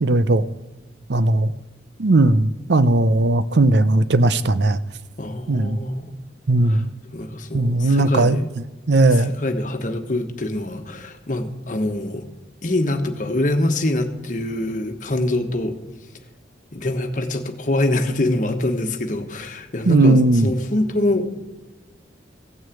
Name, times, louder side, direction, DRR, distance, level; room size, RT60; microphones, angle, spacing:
voice 1, 0.0-0.4 1.1-1.5 2.0-4.8 5.5-5.8 6.5-6.9 7.5-8.4 8.9-9.3 19.9-20.5, right 2 dB, 75° right, 14 dB, 0.6 m, -17 dB
voice 2, 5.2-6.1 6.6-6.8 7.1-8.4 9.1-12.3 12.6-15.8 16.7-21.4, left 1 dB, 45° left, 6 dB, 1.3 m, -24 dB
16.0 x 6.3 x 8.4 m, 1.1 s
head